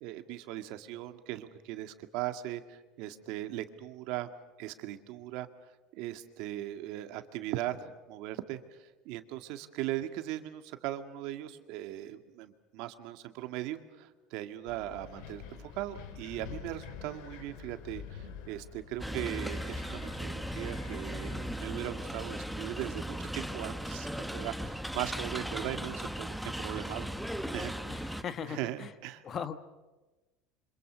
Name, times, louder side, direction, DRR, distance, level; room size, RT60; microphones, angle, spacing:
voice 1, 0.0-4.3 4.6-5.5 5.9-27.1 27.5-28.2 28.5-29.2, right 14 dB, 65° right, 8 dB, 2.0 m, -39 dB
Wind, 14.7-22.8, left 7 dB, 75° left, 3.6 m, -48 dB
sound 1, 19.0-28.2, equal, ahead, 0.9 m, -37 dB
voice 2, 27.9-28.9 29.2-29.6, left 7 dB, 30° left, 11 dB, 1.4 m, -38 dB
27.5 x 26.0 x 6.3 m, 1.1 s
cardioid pair, 155°, 0 cm